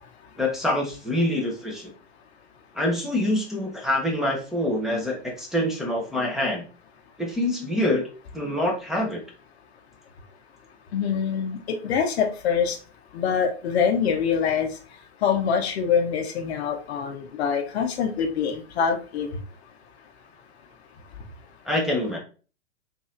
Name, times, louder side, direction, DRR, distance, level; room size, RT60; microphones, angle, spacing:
voice 1, 0.4-1.9 2.7-6.6 7.2-8.0 8.3-9.2 21.7-22.2, left 1 dB, ahead, -3 dB, 0.8 m, -25 dB
voice 2, 10.9-12.8 13.1-14.7 15.2-19.3, left 7 dB, 60° left, 5 dB, 0.8 m, -24 dB
4.0 x 2.7 x 2.5 m, 0.36 s
hypercardioid pair, 115°, 36 cm